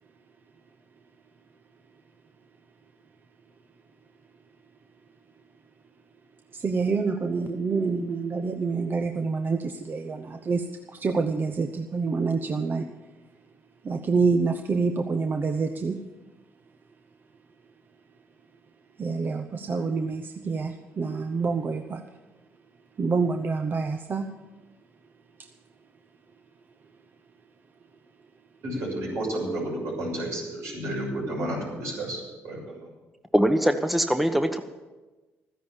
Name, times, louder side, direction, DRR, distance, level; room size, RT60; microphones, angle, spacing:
voice 1, 6.5-12.9 13.8-16.0 19.0-22.0 23.0-24.3, right 4 dB, 40° right, 6 dB, 0.9 m, -27 dB
voice 2, 28.6-32.9, right 1 dB, 80° right, -2 dB, 6.5 m, -31 dB
voice 3, 33.3-34.6, equal, ahead, 8 dB, 1.0 m, -22 dB
13.5 x 10.5 x 7.2 m, 1.2 s
cardioid pair, 75°, 5 cm